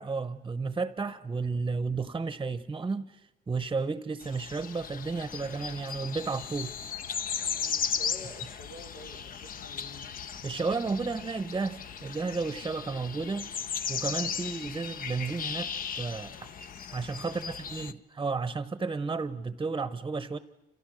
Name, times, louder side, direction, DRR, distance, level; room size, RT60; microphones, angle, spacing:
voice 1, 0.0-3.2 3.5-6.7 10.4-13.5 13.9-15.7 16.0-16.5 16.9-20.4, right 4 dB, 20° right, 0.9 m, -32 dB
sound 1, 4.2-17.9, left 7 dB, 50° left, 0.9 m, -36 dB
voice 2, 7.4-10.1 17.2-17.6, left 2 dB, 90° left, 4.2 m, -48 dB
28.5 x 28.0 x 6.4 m
cardioid pair, 105°, 18 cm